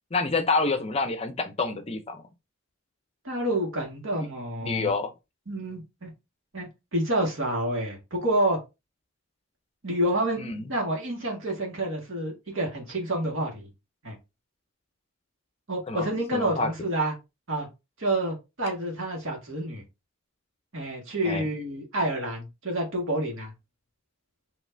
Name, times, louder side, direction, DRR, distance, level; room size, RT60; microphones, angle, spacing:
voice 1, 0.1-2.2 4.6-5.1 10.4-10.6 15.9-16.1 16.3-16.7 21.2-21.5, left 3 dB, 30° left, 0.5 m, -27 dB
voice 2, 3.2-4.9 5.5-6.1 6.5-8.6 9.8-13.7 14.0-14.2 15.7-17.2 17.5-17.7 18.0-19.8 20.7-23.5, right 1 dB, 70° right, 1.9 m, -28 dB
5.1 x 2.9 x 2.6 m
head